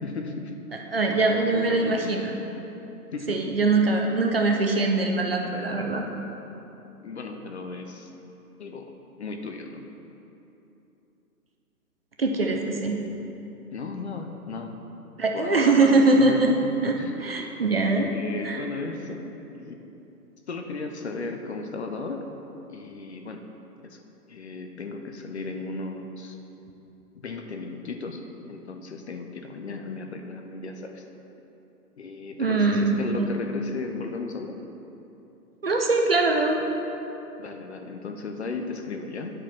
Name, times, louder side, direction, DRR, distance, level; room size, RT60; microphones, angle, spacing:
voice 1, 0.0-0.5 1.1-2.2 3.1-3.4 7.0-8.1 8.6-8.9 9.2-9.9 13.7-14.8 15.3-17.2 18.0-19.8 20.5-22.2 22.7-23.4 23.8-24.0 24.3-26.4 27.1-28.2 28.5-31.0 32.0-34.6 37.4-39.3, left 3 dB, 45° left, 4 dB, 0.6 m, -35 dB
voice 2, 0.9-2.3 3.3-6.0 12.2-13.0 15.2-16.5 16.8-18.1 18.4-18.6 32.4-33.3 35.6-36.6, right 3 dB, 40° right, 2 dB, 0.5 m, -22 dB
9.7 x 5.0 x 4.4 m, 3.0 s
hypercardioid pair, 170°, 47 cm